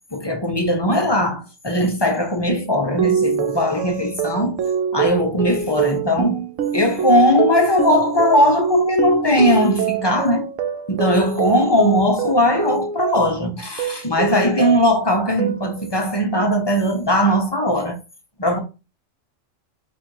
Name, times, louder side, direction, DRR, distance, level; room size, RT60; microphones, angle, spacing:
voice 1, 0.1-4.6 4.9-6.4 6.7-10.5 10.9-18.0 18.4-18.6, left 1 dB, 30° left, 0.6 m, -19 dB
sound 1, 3.0-13.4 13.8-15.0 15.4-15.9, right 7 dB, 80° right, 1.0 m, -25 dB
4.0 x 2.6 x 4.6 m
omnidirectional pair, 1.3 m